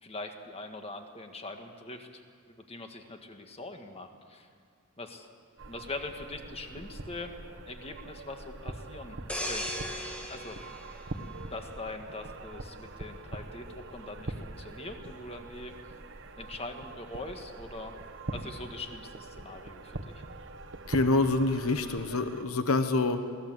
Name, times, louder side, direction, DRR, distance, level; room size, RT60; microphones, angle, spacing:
voice 1, 0.0-2.2 2.5-4.5 5.0-5.3 5.7-7.4 7.7-9.2 9.4-9.9 10.3-10.6 11.5-15.7 16.4-18.0 18.3-20.2, left 2 dB, 25° left, 5 dB, 1.7 m, -42 dB
sound 1, 5.6-22.4, right 2 dB, 60° right, 1.3 m, -43 dB
sound 2, 9.3-12.0 12.4-12.7, equal, 5° left, 1.8 m, -38 dB
voice 2, 20.9-23.3, left 2 dB, 70° left, 9 dB, 1.1 m, -26 dB
22.5 x 18.0 x 7.9 m, 2.3 s
head